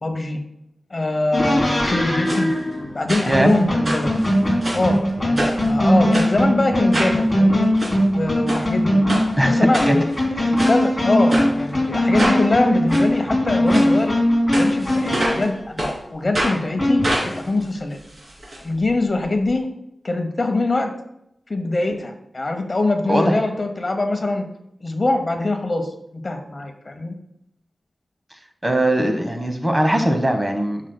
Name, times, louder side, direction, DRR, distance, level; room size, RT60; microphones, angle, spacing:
voice 1, 0.0-0.4 0.9-2.5 2.9-4.3 4.7-7.7 8.1-9.0 9.5-10.1 10.4-14.1 14.5-18.0 18.6-19.7 20.0-20.9 21.5-24.5 24.8-27.1, left 2 dB, 40° left, 6 dB, 0.9 m, -23 dB
sound 1, 1.3-15.5 16.8-17.4, equal, 15° left, 3.1 m, -20 dB
sound 2, 2.3-2.4 3.1-3.5 3.8-4.9 5.4-5.7 6.1-6.3 6.9-7.2 7.6-7.9 8.5-8.6 9.1-9.3 9.7-10.2 10.6-10.8 11.3-11.5 12.2-12.4 12.9-13.0 13.7-13.9 14.5-15.5 15.8-15.9 16.3-16.6 17.0-18.6 18.9-19.0 19.2-19.3, right 1 dB, 45° right, 2.9 m, -25 dB
voice 2, 9.4-10.0 10.4-10.5 23.1-23.4 28.6-30.8, right 1 dB, 15° right, 5 dB, 1.1 m, -20 dB
11.5 x 6.4 x 2.2 m, 0.80 s
wide cardioid pair, 80°, 0 cm